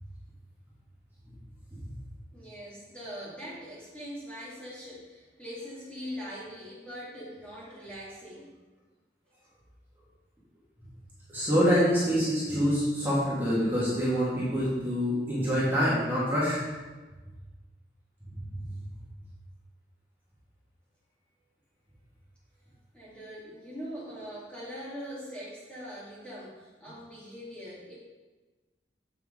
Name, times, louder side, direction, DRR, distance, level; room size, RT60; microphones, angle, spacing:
voice 1, 2.3-8.5 22.9-28.0, equal, 5° left, -8 dB, 1.9 m, -42 dB
voice 2, 11.3-16.6, equal, 10° right, -9 dB, 1.8 m, -26 dB
7.6 x 5.7 x 3.7 m, 1.3 s
head